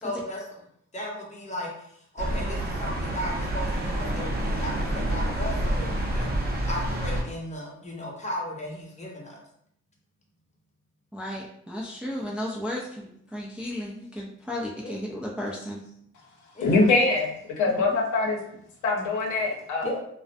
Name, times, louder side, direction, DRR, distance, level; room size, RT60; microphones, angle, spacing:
voice 1, 0.0-0.4 0.9-9.4 14.8-14.9 16.5-16.8 19.8-20.0, left 1 dB, 25° left, -2 dB, 0.8 m, -35 dB
sound 1, 2.2-7.2, right 1 dB, 30° right, 0.7 m, -28 dB
voice 2, 11.1-15.8, left 1 dB, 5° right, -2 dB, 0.3 m, -34 dB
voice 3, 16.6-18.4 18.8-19.9, left 3 dB, 75° left, 0 dB, 0.7 m, -23 dB
2.4 x 2.1 x 2.4 m, 0.70 s
cardioid pair, 90°, 30 cm